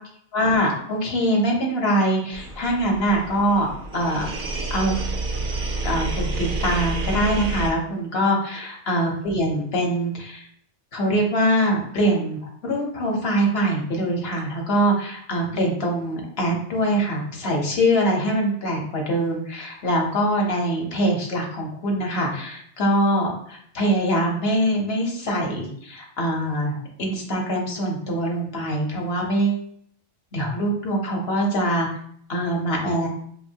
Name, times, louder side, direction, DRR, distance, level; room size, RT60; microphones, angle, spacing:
voice 1, 0.3-3.7 3.9-4.3 4.7-5.0 5.8-10.5 10.9-29.6 30.3-31.9 32.3-33.1, equal, 55° left, 0 dB, 1.1 m, -23 dB
sound 1, 2.3-7.7, right 3 dB, 55° right, 0.6 m, -29 dB
4.4 x 2.7 x 2.7 m, 0.65 s
omnidirectional pair, 1.3 m